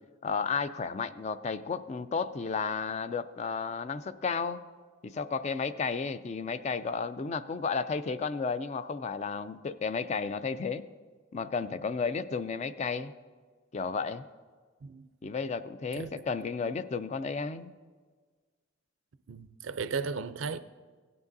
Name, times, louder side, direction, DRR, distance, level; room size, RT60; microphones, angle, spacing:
voice 1, 0.2-4.6 5.0-10.9 11.3-13.1 13.7-14.2 15.2-17.7, left 5 dB, 35° left, 0.3 m, -33 dB
voice 2, 19.3-20.6, right 5 dB, 70° right, 0.5 m, -35 dB
16.5 x 9.7 x 2.6 m
head